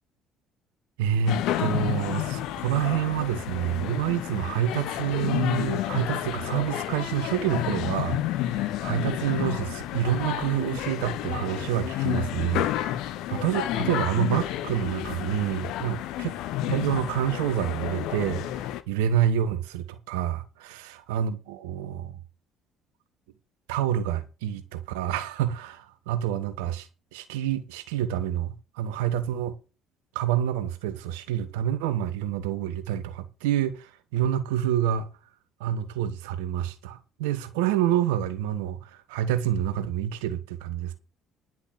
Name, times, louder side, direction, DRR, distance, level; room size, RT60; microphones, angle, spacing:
voice 1, 1.0-12.6 13.0-16.3 16.7-18.5 18.9-22.1 23.7-29.6 30.1-35.1 35.6-40.9, right 10 dB, 70° right, 1.3 m, -28 dB
sound 1, 1.3-18.8, left 13 dB, 60° left, 0.9 m, -30 dB
10.5 x 6.1 x 7.6 m
figure-of-eight pair, 55°, 0 cm